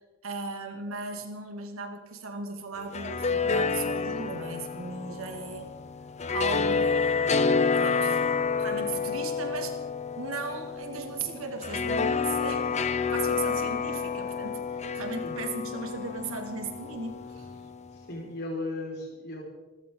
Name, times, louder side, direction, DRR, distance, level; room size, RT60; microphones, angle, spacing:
voice 1, 0.2-5.7 6.3-8.2 8.6-9.8 10.2-17.5, right 3 dB, 75° right, 4 dB, 2.4 m, -37 dB
sound 1, 2.8-17.9, left 5 dB, 35° left, 0.7 m, -29 dB
voice 2, 18.1-19.4, left 2 dB, 50° left, -1 dB, 5.1 m, -36 dB
27.0 x 13.5 x 3.9 m, 1.1 s
head